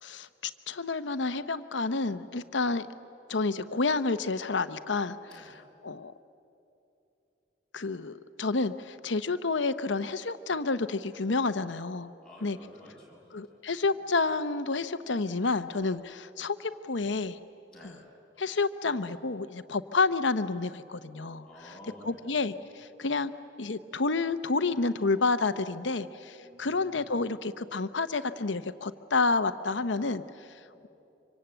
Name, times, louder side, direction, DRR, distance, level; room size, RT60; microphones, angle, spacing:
voice 1, 0.0-2.9 3.3-5.5 5.8-6.1 7.7-12.1 12.4-12.6 13.3-17.4 17.8-17.9 18.4-21.7 22.0-23.3 23.6-30.2, left 3 dB, 85° left, 12 dB, 0.9 m, -29 dB
voice 2, 12.2-13.6 17.7-18.0 21.4-22.4 26.4-27.0 30.6-30.9, left 1 dB, 5° left, -6 dB, 7.5 m, -51 dB
25.5 x 25.0 x 9.0 m, 2.8 s
head